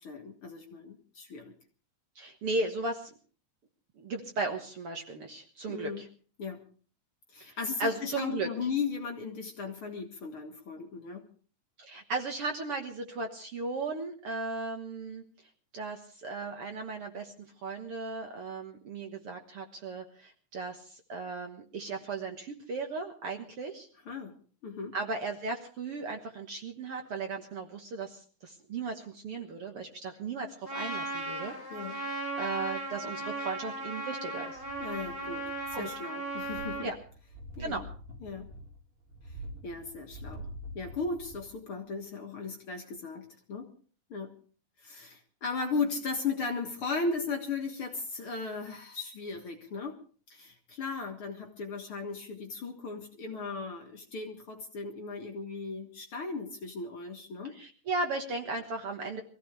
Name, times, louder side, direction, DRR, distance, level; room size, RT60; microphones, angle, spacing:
voice 1, 0.0-1.5 5.7-6.1 6.4-6.6 7.3-11.3 24.1-25.0 31.7-32.0 34.8-36.9 37.6-37.8 38.2-38.5 39.6-40.5 40.7-43.7 44.1-44.4 44.8-50.0 50.3-57.6, left 4 dB, 50° left, 2 dB, 2.1 m, -37 dB
voice 2, 2.2-3.1 4.0-6.0 7.8-8.5 11.8-15.2 15.7-23.9 24.9-31.5 31.9-34.6 35.7-35.9 36.8-36.9 37.6-37.8 57.6-59.2, right 3 dB, 55° right, 4 dB, 1.9 m, -36 dB
Trumpet, 30.6-36.9, right 2 dB, 5° right, 6.6 m, -37 dB
sound 1, 34.5-36.0 36.3-41.6 41.9-42.0, equal, 35° right, 5.0 m, -46 dB
23.0 x 15.5 x 3.4 m, 0.40 s
omnidirectional pair, 3.7 m